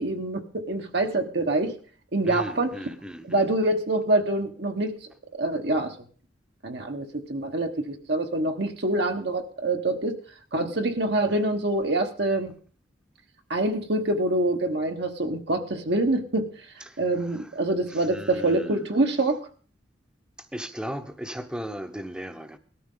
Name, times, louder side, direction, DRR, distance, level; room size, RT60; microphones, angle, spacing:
voice 1, 0.0-1.7 2.1-2.7 3.3-4.9 5.4-5.9 6.6-10.2 10.5-12.5 13.5-16.5 17.0-19.4, right 2 dB, 60° right, 1.3 m, -25 dB
voice 2, 2.2-3.5 11.3-11.4 16.9-17.5 17.9-19.0 20.5-22.6, equal, 5° right, 0.9 m, -37 dB
19.0 x 13.0 x 3.8 m
head